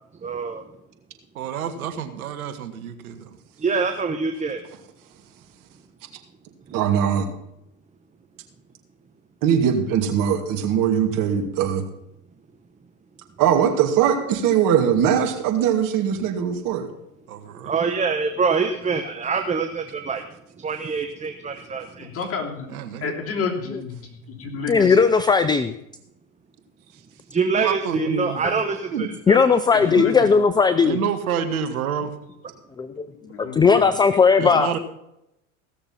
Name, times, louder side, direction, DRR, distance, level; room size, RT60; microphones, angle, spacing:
voice 1, 0.2-0.6 3.6-4.6 17.6-20.2 20.6-22.1 27.3-29.4, right 5 dB, 15° right, 6 dB, 1.0 m, -25 dB
voice 2, 1.3-3.4 17.3-17.7 22.7-23.1 27.6-28.5 28.9-29.1 30.0-30.1 30.8-32.1 34.4-34.8, right 7 dB, 85° right, 8 dB, 1.6 m, -28 dB
voice 3, 6.7-7.3 9.4-11.8 13.4-16.9, right 8 dB, 50° right, 4 dB, 2.4 m, -20 dB
voice 4, 22.0-22.7 23.0-25.0 29.7-30.3 33.2-34.0, left 5 dB, 35° left, 0 dB, 3.3 m, -31 dB
voice 5, 24.7-25.7 28.4-28.5 29.3-31.0 32.8-33.1 33.4-34.7, left 5 dB, 10° left, 12 dB, 0.5 m, -17 dB
16.5 x 6.8 x 5.8 m, 0.84 s
hypercardioid pair, 95°, 42 cm